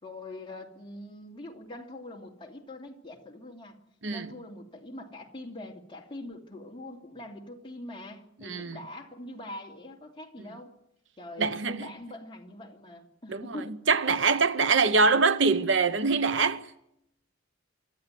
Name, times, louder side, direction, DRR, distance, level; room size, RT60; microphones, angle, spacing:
voice 1, 0.0-3.8 4.1-10.7 11.2-13.8, left 1 dB, 25° left, 2.8 m, -43 dB
voice 2, 8.4-8.8 11.4-11.8 13.3-13.6 13.9-16.7, right 4 dB, 65° right, 0.9 m, -24 dB
26.5 x 13.0 x 9.3 m
head